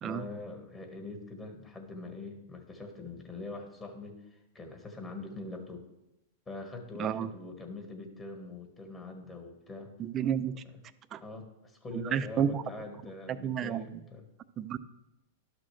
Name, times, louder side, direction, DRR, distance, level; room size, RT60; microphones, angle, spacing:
voice 1, 0.0-5.8 6.5-9.9 11.2-14.3 14.6-14.7, left 3 dB, 20° left, 3 dB, 1.5 m, -43 dB
voice 2, 10.0-10.5 11.1-11.2 11.9-12.6 13.4-14.0 14.6-14.8, right 8 dB, 30° right, 13 dB, 0.5 m, -31 dB
12.0 x 6.1 x 3.2 m, 0.90 s
hypercardioid pair, 120°, 0 cm